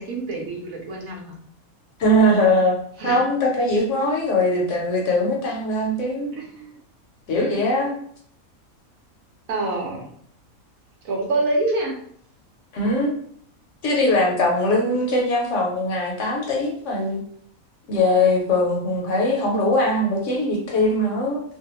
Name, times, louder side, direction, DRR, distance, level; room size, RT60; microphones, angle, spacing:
voice 1, 0.0-1.4 3.0-3.2 6.4-6.7 9.5-10.1 11.0-12.0, right 2 dB, 75° right, 0 dB, 1.1 m, -26 dB
voice 2, 2.0-2.8 3.0-6.3 7.3-7.9 12.7-13.1 13.8-17.2 17.9-21.4, left 1 dB, 65° left, 0 dB, 0.9 m, -21 dB
2.6 x 2.2 x 2.9 m, 0.62 s
omnidirectional pair, 1.5 m